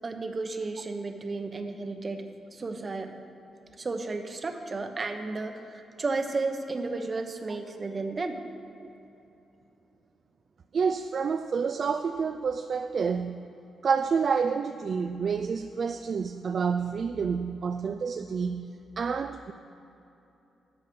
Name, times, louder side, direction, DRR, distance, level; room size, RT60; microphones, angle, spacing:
voice 1, 0.0-2.2 2.5-3.1 3.8-8.4, right 3 dB, 30° right, 6 dB, 0.8 m, -33 dB
voice 2, 10.7-13.4 13.8-18.7 19.0-19.5, right 5 dB, 45° right, 8 dB, 0.3 m, -28 dB
11.0 x 7.4 x 6.2 m, 3.0 s
wide cardioid pair, 145°, 0 cm